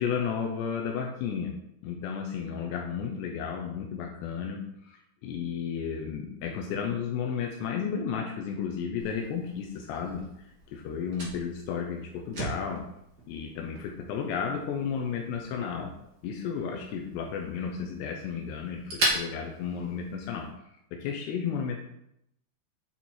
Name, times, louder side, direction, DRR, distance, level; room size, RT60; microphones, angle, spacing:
voice 1, 0.0-1.5 1.8-4.6 4.9-10.2 10.7-12.8 13.3-15.9 16.2-20.5 20.9-21.8, left 7 dB, 80° left, 2 dB, 2.6 m, -33 dB
Fire, 9.0-20.5, right 1 dB, 75° right, 0.9 m, -38 dB
9.1 x 4.4 x 4.3 m, 0.78 s
omnidirectional pair, 5.3 m